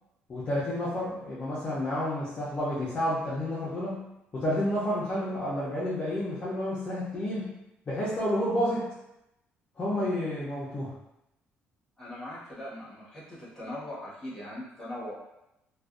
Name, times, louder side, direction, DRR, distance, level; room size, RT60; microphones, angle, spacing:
voice 1, 0.3-4.0 4.3-7.5 7.9-8.9 9.8-10.9, left 1 dB, 30° left, -9 dB, 0.6 m, -30 dB
voice 2, 12.0-15.1, left 1 dB, 5° left, -9 dB, 1.1 m, -40 dB
2.5 x 2.2 x 2.4 m, 0.87 s
cardioid pair, 140°, 4 cm